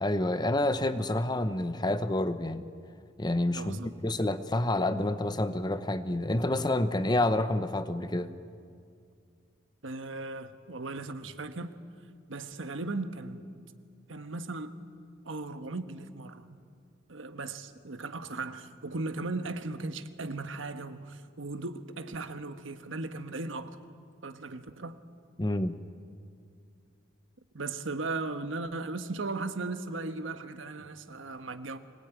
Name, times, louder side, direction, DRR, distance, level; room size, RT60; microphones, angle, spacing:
voice 1, 0.0-2.6 3.2-8.3 25.4-25.8, left 1 dB, 20° left, 0.9 m, -28 dB
voice 2, 3.5-3.9 9.8-11.7 12.3-13.5 14.1-14.7 15.2-16.5 17.1-23.8 24.2-25.0 27.5-31.8, right 3 dB, 85° right, 1.3 m, -37 dB
25.5 x 19.0 x 9.2 m
head